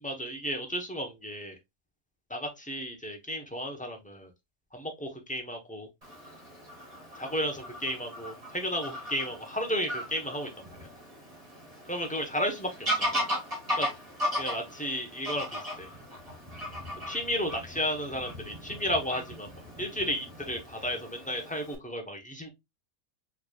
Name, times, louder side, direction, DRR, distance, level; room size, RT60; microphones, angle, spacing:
voice 1, 0.0-1.6 2.3-4.3 4.7-5.9 7.2-10.5 11.9-13.3 13.8-13.9 14.4-15.9 17.1-19.5 19.8-22.5, equal, 10° left, 0.6 m, -33 dB
Fowl / Bird vocalization bird call bird song, 6.0-21.7, equal, 25° right, 1.6 m, -37 dB
4.6 x 3.1 x 2.2 m
omnidirectional pair, 1.5 m